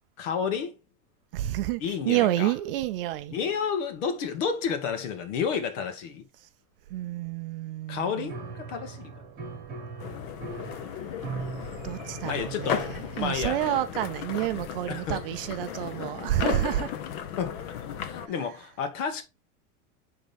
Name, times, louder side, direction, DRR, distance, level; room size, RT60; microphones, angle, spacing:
voice 1, 0.2-0.8 1.8-2.5 3.3-6.2 7.9-9.1 12.2-13.6 14.9-15.2 17.4-19.2, left 6 dB, 60° left, 1.8 m, -31 dB
voice 2, 1.3-3.3 6.9-8.3 11.8-16.9, right 14 dB, 40° right, 0.5 m, -29 dB
Piano, 8.3-16.7, right 4 dB, 20° right, 1.7 m, -42 dB
sound 1, 10.0-18.3, left 8 dB, 35° left, 0.8 m, -35 dB
10.0 x 3.8 x 3.5 m
supercardioid pair, 170°, 44 cm